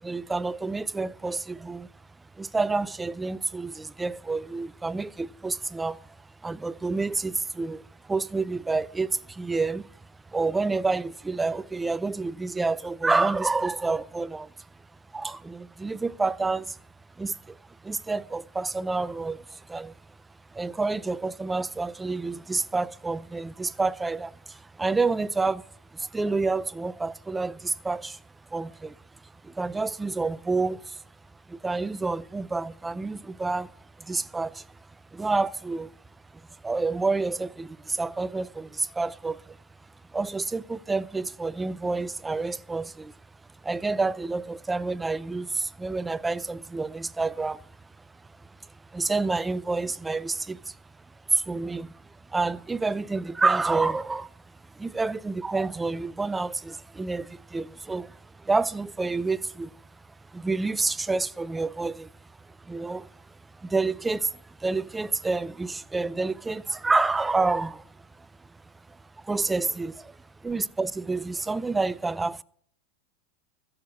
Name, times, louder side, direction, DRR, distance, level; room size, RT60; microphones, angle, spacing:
voice 1, 0.0-1.9 2.4-6.0 6.4-9.9 10.3-14.5 15.1-16.8 17.2-20.0 20.5-25.7 25.9-28.2 28.5-29.0 29.4-31.0 31.5-33.7 34.0-34.7 35.1-35.9 36.3-39.6 40.1-43.1 43.6-47.7 48.4-50.8 51.3-52.0 52.3-59.7 60.3-62.1 62.5-63.2 63.5-68.3 68.9-72.4, right 3 dB, 10° right, 0.4 m, -29 dB
15.0 x 6.5 x 5.8 m
hypercardioid pair, 110°, 0 cm